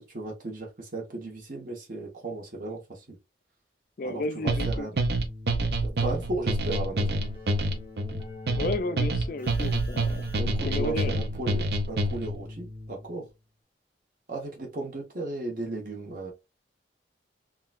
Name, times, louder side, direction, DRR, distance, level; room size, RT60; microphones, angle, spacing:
voice 1, 0.0-3.2 4.0-5.0 5.8-7.2 10.0-13.3 14.3-16.3, right 2 dB, 50° right, 1.2 m, -35 dB
voice 2, 4.0-4.9 8.6-10.3 10.7-11.2, left 2 dB, 45° left, 0.3 m, -32 dB
sound 1, 4.5-12.4, right 2 dB, 65° right, 0.6 m, -27 dB
Keyboard (musical), 5.0-13.3, left 2 dB, 10° right, 1.6 m, -44 dB
3.8 x 2.3 x 2.4 m
head